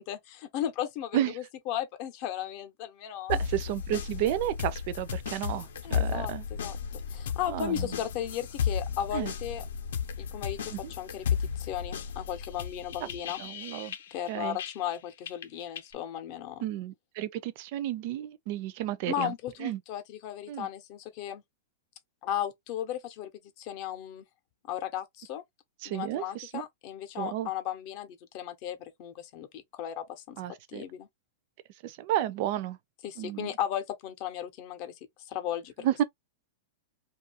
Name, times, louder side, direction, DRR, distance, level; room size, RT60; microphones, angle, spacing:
voice 1, 0.0-3.4 5.8-9.6 10.2-13.4 14.1-16.7 19.1-21.4 22.2-23.3 23.6-24.2 24.6-25.4 25.8-30.4 30.7-31.1 33.0-34.9 35.3-35.9, left 11 dB, 35° left, 0.6 m, -36 dB
sound 1, 3.3-15.0 15.3-15.9, left 7 dB, 80° left, 0.6 m, -34 dB
voice 2, 3.3-6.5 7.5-7.9 9.1-9.3 10.7-10.9 13.0-13.1 13.4-13.9 14.3-14.6 16.6-19.3 19.6-19.8 20.5-20.7 25.8-26.6 27.2-27.5 30.4-30.8 31.8-32.8 33.2-33.5 35.8-36.0, right 13 dB, 45° right, 0.4 m, -32 dB
2.6 x 2.4 x 2.8 m
supercardioid pair, 165°, 0 cm